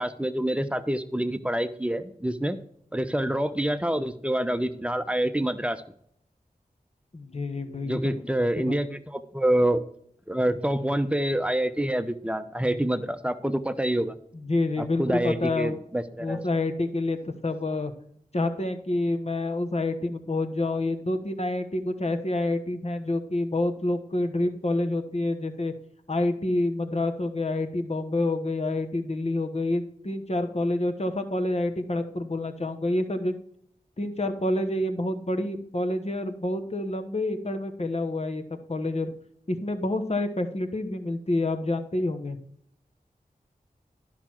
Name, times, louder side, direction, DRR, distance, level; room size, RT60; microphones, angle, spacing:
voice 1, 0.0-2.6 2.9-5.8 7.8-9.8 10.3-14.1 14.8-16.4, right 1 dB, 10° right, 10 dB, 0.8 m, -27 dB
voice 2, 7.1-8.2 8.6-8.8 14.3-15.8 16.2-17.9 18.3-25.7 26.1-33.4 34.0-39.1 39.5-42.4, left 2 dB, 45° left, 6 dB, 1.2 m, -28 dB
11.0 x 6.0 x 4.5 m, 0.68 s
cardioid pair, 45°, 15 cm